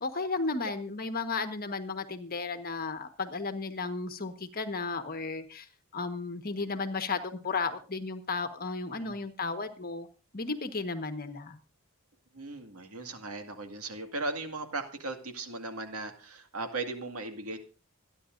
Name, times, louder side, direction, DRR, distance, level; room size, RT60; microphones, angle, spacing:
voice 1, 0.0-5.7 5.9-10.1 10.3-11.6, left 4 dB, 45° left, 8 dB, 1.4 m, -34 dB
voice 2, 12.3-17.6, right 3 dB, 80° right, 6 dB, 2.1 m, -37 dB
25.5 x 10.0 x 2.6 m, 0.35 s
head